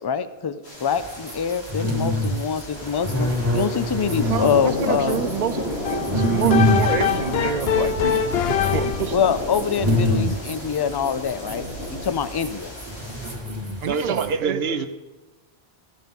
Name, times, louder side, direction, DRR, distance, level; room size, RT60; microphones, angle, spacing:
voice 1, 0.0-5.3 9.1-11.6 11.9-12.7, left 7 dB, 35° left, 13 dB, 0.4 m, -25 dB
sound 1, 0.6-13.3, left 1 dB, 90° left, 3.0 m, -32 dB
sound 2, 0.9-14.3, equal, 15° right, 2.1 m, -26 dB
voice 2, 4.2-9.2 13.8-14.8, right 8 dB, 55° right, 14 dB, 0.5 m, -29 dB
sound 3, 5.8-9.2, left 8 dB, 75° left, 0.9 m, -23 dB
voice 3, 13.8-14.9, right 4 dB, 70° right, 9 dB, 1.1 m, -25 dB
15.0 x 7.4 x 5.4 m, 1.2 s
omnidirectional pair, 1.1 m